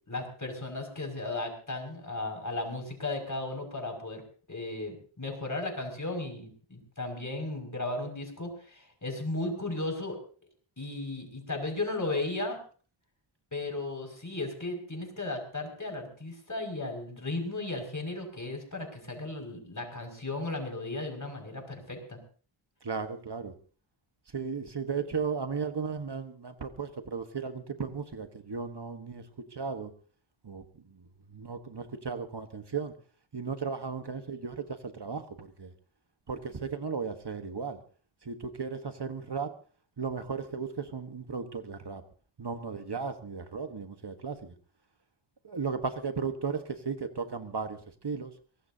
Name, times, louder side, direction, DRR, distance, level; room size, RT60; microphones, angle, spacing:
voice 1, 0.1-4.2 4.5-10.2 10.8-12.6 13.5-22.2, left 2 dB, 40° left, 3 dB, 6.0 m, -35 dB
voice 2, 22.8-23.5 24.3-29.2 29.5-29.9 30.4-32.9 33.3-35.7 36.3-37.8 38.2-39.5 40.0-42.0 42.4-44.5 45.4-48.3, right 5 dB, 55° right, 8 dB, 1.4 m, -35 dB
23.0 x 19.0 x 2.8 m, 0.41 s
wide cardioid pair, 55°, 49 cm